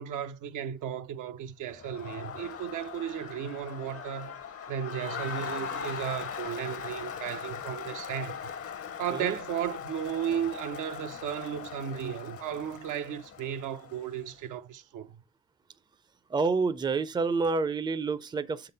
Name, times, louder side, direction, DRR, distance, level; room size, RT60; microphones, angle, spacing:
voice 1, 0.0-4.4 4.7-8.4 9.0-15.2, right 9 dB, 80° right, 0.6 m, -35 dB
Crowd, 1.7-14.2, left 7 dB, 50° left, 0.7 m, -40 dB
voice 2, 16.3-18.7, right 4 dB, 15° right, 0.4 m, -28 dB
6.9 x 3.9 x 5.4 m
cardioid pair, 90°, 30 cm